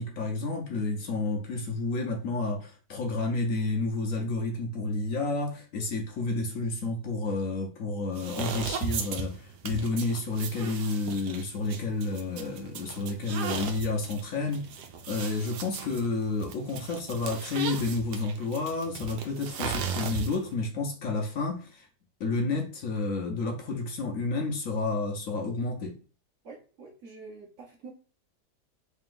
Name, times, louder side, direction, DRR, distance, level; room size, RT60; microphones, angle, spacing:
voice 1, 0.0-14.7 15.1-21.9 22.2-26.0, left 3 dB, 65° left, 1.0 m, -30 dB
sound 1, 8.1-20.5, right 7 dB, 85° right, 1.2 m, -37 dB
voice 2, 26.4-27.9, right 4 dB, 55° right, 1.0 m, -46 dB
3.3 x 2.8 x 3.7 m
omnidirectional pair, 1.7 m